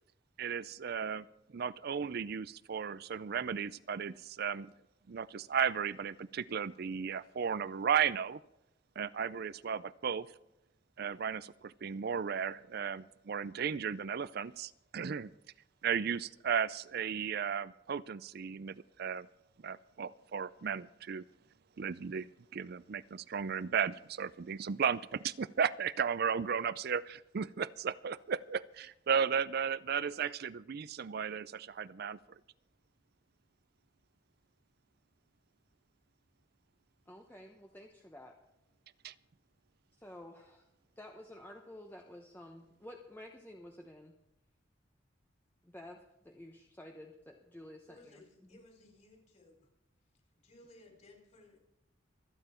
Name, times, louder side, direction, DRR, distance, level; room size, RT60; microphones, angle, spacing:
voice 1, 0.4-1.3 1.5-4.7 5.1-8.4 9.0-10.3 11.0-15.3 15.8-19.3 19.6-21.2 21.8-32.2 39.0-39.1, right 7 dB, 55° right, 18 dB, 0.4 m, -35 dB
voice 2, 37.1-38.4 40.0-40.7 41.0-44.1 45.6-48.2, left 1 dB, 10° left, 2 dB, 0.9 m, -51 dB
voice 3, 47.8-49.7 50.4-51.6, left 2 dB, 35° left, 2 dB, 3.9 m, -59 dB
26.0 x 9.1 x 4.4 m, 0.87 s
head